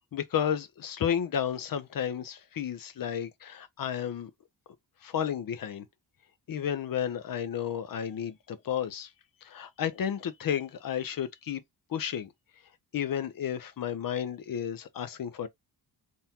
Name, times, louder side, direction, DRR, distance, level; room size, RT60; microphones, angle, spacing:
voice 1, 0.1-4.3 5.0-5.8 6.5-9.1 9.4-11.6 11.9-12.3 12.9-15.5, left 9 dB, 50° left, 0.6 m, -32 dB
3.8 x 2.7 x 2.8 m
wide cardioid pair, 155°, 43 cm